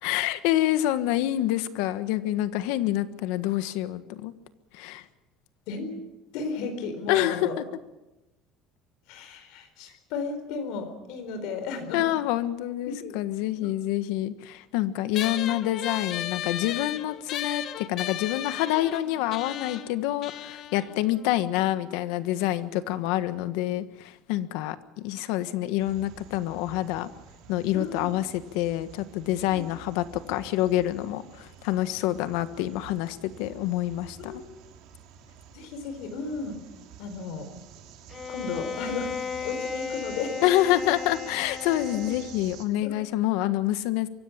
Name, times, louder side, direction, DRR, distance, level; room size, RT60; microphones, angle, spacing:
voice 1, 0.0-4.3 4.7-5.0 7.1-7.6 11.9-27.1 27.5-34.4 40.4-44.1, left 14 dB, 90° left, 12 dB, 1.4 m, -27 dB
voice 2, 5.7-6.0 6.3-7.6 9.1-12.0 12.9-13.2 13.6-13.7 27.7-28.1 34.2-34.5 35.5-36.6 37.0-37.5 38.3-40.5 41.9-42.1 42.8-43.0, left 4 dB, 70° left, 7 dB, 4.3 m, -34 dB
sound 1, 15.1-21.9, left 11 dB, 45° left, 0.9 m, -36 dB
sound 2, 25.8-42.7, right 9 dB, 60° right, 3.0 m, -49 dB
Bowed string instrument, 38.1-42.5, left 6 dB, 20° left, 0.7 m, -36 dB
24.0 x 16.5 x 8.6 m, 1.0 s
cardioid pair, 170°, 0 cm